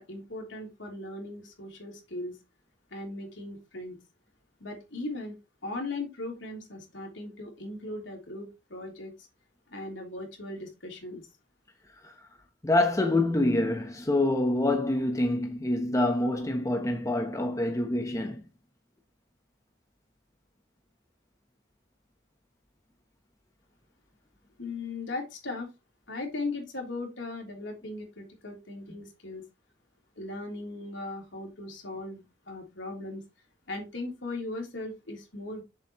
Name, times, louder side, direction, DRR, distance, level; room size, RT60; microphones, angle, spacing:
voice 1, 0.0-2.4 2.9-4.0 4.6-5.4 5.6-9.1 9.7-11.3 24.6-25.7 26.1-29.4 30.2-33.2 33.7-35.6, left 2 dB, 75° left, 3.3 m, -38 dB
voice 2, 12.6-18.4, left 1 dB, 15° left, 0.9 m, -26 dB
8.2 x 7.1 x 3.0 m
head